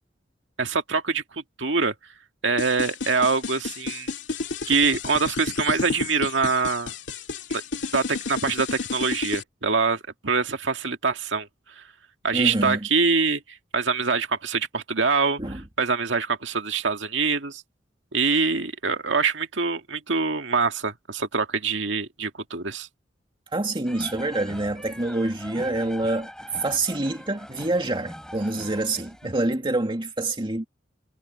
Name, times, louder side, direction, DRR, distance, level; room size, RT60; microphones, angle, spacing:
voice 1, 0.6-1.9 2.4-4.1 4.7-6.9 7.5-7.6 7.9-11.5 11.8-11.9 12.2-17.6 18.1-22.9, right 4 dB, 85° right, 1.9 m, -24 dB
sound 1, 2.6-9.4, left 4 dB, 70° left, 2.7 m, -31 dB
voice 2, 12.3-12.8 15.4-15.6 23.5-26.3 26.6-30.6, right 2 dB, 30° right, 2.3 m, -26 dB
sound 2, 23.8-29.5, equal, 5° left, 5.2 m, -42 dB
head